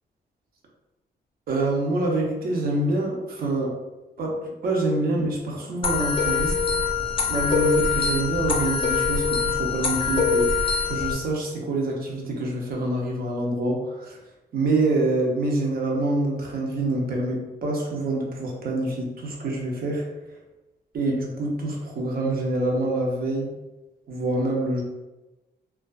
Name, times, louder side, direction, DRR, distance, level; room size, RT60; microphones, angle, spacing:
voice 1, 1.5-3.8 4.2-6.5 7.3-14.2 14.5-20.1 20.9-23.5 24.1-24.8, right 2 dB, 60° right, -1 dB, 0.6 m, -26 dB
sound 1, 5.8-11.1, left 5 dB, 30° left, 0.4 m, -23 dB
2.4 x 2.3 x 2.3 m, 1.1 s
cardioid pair, 105°, 17 cm